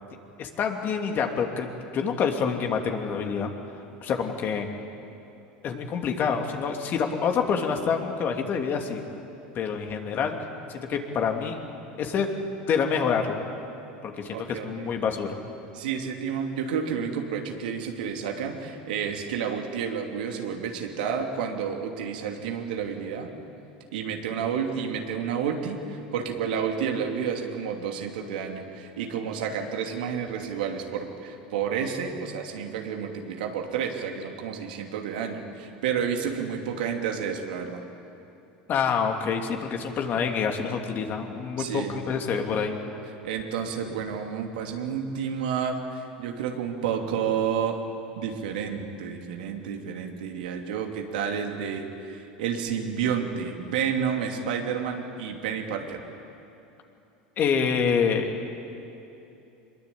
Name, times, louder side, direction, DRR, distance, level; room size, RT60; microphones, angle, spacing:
voice 1, 0.4-1.7 1.9-3.5 4.0-4.7 5.6-9.0 9.5-10.3 10.7-11.6 12.0-12.3 12.6-13.4 14.0-15.4 38.7-42.7 57.4-58.3, left 6 dB, 45° left, 3 dB, 2.9 m, -27 dB
voice 2, 14.3-14.9 15.7-23.3 23.9-37.8 41.6-42.0 43.2-47.8 48.2-56.0, right 7 dB, 80° right, 3 dB, 2.8 m, -30 dB
24.0 x 21.5 x 8.7 m, 2.8 s
hypercardioid pair, 90°, 5 cm